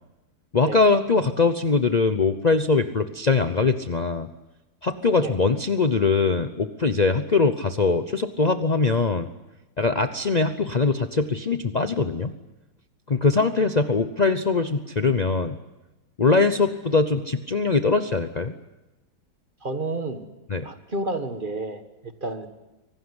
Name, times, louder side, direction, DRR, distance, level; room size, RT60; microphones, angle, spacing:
voice 1, 0.5-4.3 4.8-9.3 9.8-12.3 13.1-15.6 16.2-18.5 20.5-20.7, left 4 dB, 65° left, 8 dB, 0.4 m, -22 dB
voice 2, 19.6-20.3 20.6-22.5, right 2 dB, 30° right, 8 dB, 1.5 m, -30 dB
25.0 x 18.0 x 9.7 m, 1.1 s
omnidirectional pair, 2.1 m